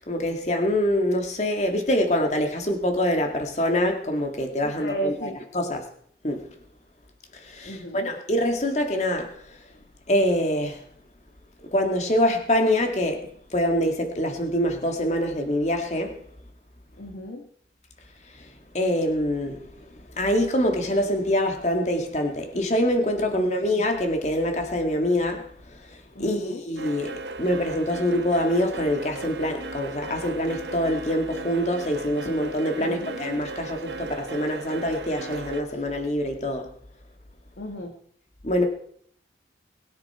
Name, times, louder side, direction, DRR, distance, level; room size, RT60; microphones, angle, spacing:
voice 1, 0.0-5.8 6.2-6.5 7.4-9.4 10.1-10.8 11.6-16.2 18.7-19.8 20.2-25.5 25.7-36.7 38.4-38.6, left 1 dB, 40° left, 4 dB, 2.2 m, -25 dB
voice 2, 4.6-5.4 7.6-8.1 17.0-17.5 23.4-23.6 26.2-26.6 32.8-33.1 37.6-37.9, equal, 75° left, 2 dB, 2.0 m, -34 dB
sound 1, 26.8-35.6, right 3 dB, 75° right, 1.0 m, -37 dB
21.0 x 9.8 x 4.5 m, 0.64 s
head